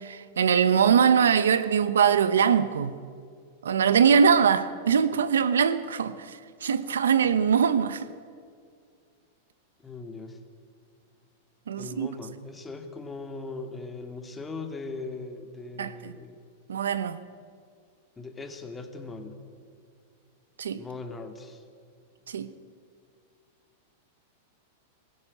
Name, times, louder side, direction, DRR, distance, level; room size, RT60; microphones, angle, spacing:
voice 1, 0.0-2.9 3.6-8.1 11.7-12.1 15.8-16.1 16.7-17.2 20.6-20.8 22.3-22.5, right 7 dB, 90° right, 1.0 m, -22 dB
voice 2, 9.8-10.4 11.8-16.4 18.2-19.4 20.8-21.6, left 3 dB, 15° left, 2.3 m, -39 dB
23.0 x 15.5 x 8.4 m
hypercardioid pair, 125°, 0 cm